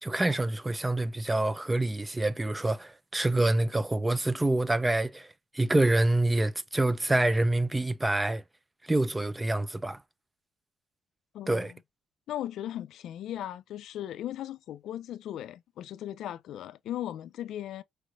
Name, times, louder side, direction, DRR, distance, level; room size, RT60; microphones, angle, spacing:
voice 1, 0.0-5.3 5.5-8.4 8.9-10.0 11.5-11.7, right 2 dB, 15° right, 0.5 m, -26 dB
voice 2, 11.3-11.8 12.3-17.8, left 12 dB, 80° left, 0.4 m, -37 dB
4.7 x 3.1 x 2.4 m
cardioid pair, 90°, 0 cm